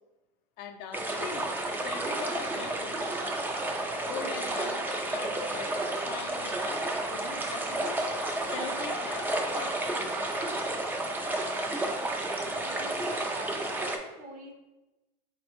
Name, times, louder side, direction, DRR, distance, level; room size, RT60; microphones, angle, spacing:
voice 1, 0.6-3.0 4.0-4.8 5.1-8.1 8.5-9.8, left 6 dB, 55° left, 5 dB, 0.5 m, -41 dB
sound 1, 0.9-14.0, right 2 dB, 10° right, 0.4 m, -31 dB
voice 2, 12.4-13.6 14.2-14.5, right 2 dB, 40° right, 1 dB, 0.7 m, -46 dB
3.9 x 2.2 x 3.0 m, 1.0 s
supercardioid pair, 110°, 21 cm